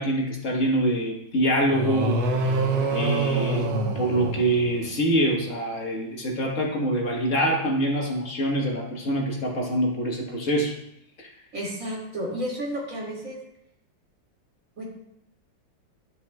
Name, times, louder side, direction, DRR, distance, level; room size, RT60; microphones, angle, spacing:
voice 1, 0.0-2.2 2.4-2.6 2.9-10.7 11.2-11.3, right 1 dB, 45° left, -1 dB, 1.6 m, -25 dB
sound 1, 1.7-5.0, right 2 dB, 75° right, 1.6 m, -26 dB
voice 2, 11.5-13.4 14.8-14.9, equal, 45° right, -3 dB, 2.7 m, -32 dB
11.5 x 6.8 x 2.3 m, 0.79 s
omnidirectional pair, 2.0 m